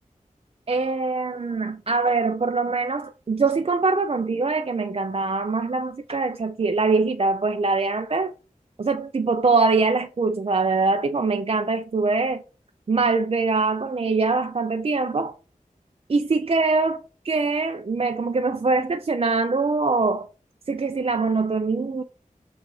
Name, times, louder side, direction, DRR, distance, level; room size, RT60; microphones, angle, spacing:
voice 1, 0.7-8.3 8.8-12.4 12.9-15.3 16.1-20.3 20.7-22.0, right 3 dB, 45° right, 0.3 m, -23 dB
6.6 x 2.4 x 3.1 m
wide cardioid pair, 45°, 14 cm